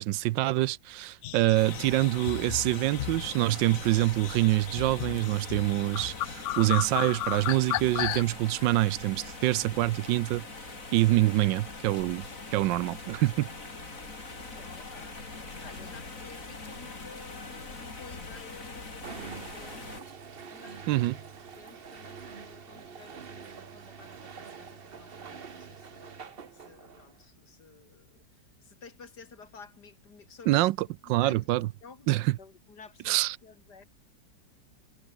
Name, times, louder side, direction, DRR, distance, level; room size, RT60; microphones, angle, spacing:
voice 1, 0.0-10.5 10.9-12.3 12.5-13.5 20.9-21.1 30.5-30.8 31.1-31.7 32.1-32.4 33.1-33.4, right 16 dB, 80° right, 1.3 m, -25 dB
sound 1, 1.2-8.2, left 13 dB, 80° left, 0.6 m, -35 dB
sound 2, 1.5-20.0, left 3 dB, 45° left, 4.1 m, -43 dB
voice 2, 6.5-6.8 14.5-15.1 15.6-20.2 20.5-21.1 21.6-26.1 26.5-28.2 28.6-30.7 31.0-31.5 31.8-32.1 32.4-33.8, left 5 dB, 60° left, 3.7 m, -52 dB
sound 3, 19.0-27.2, right 6 dB, 35° right, 1.1 m, -45 dB
omnidirectional pair, 2.0 m